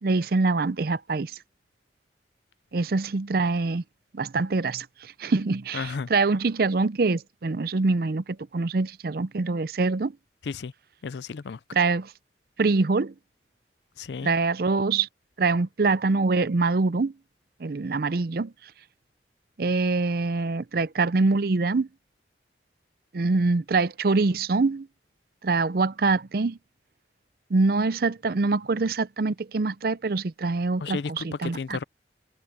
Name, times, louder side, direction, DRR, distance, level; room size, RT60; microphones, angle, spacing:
voice 1, 0.0-1.4 2.7-3.8 4.1-10.1 11.7-12.1 12.6-13.1 14.2-15.1 15.4-17.1 17.6-18.5 19.6-21.9 23.1-24.9 25.4-26.6 27.5-31.8, right 3 dB, 55° right, 0.5 m, -24 dB
voice 2, 5.7-6.1 10.4-10.7 11.0-11.6 14.0-14.3 30.8-31.8, left 5 dB, 75° left, 0.5 m, -33 dB
head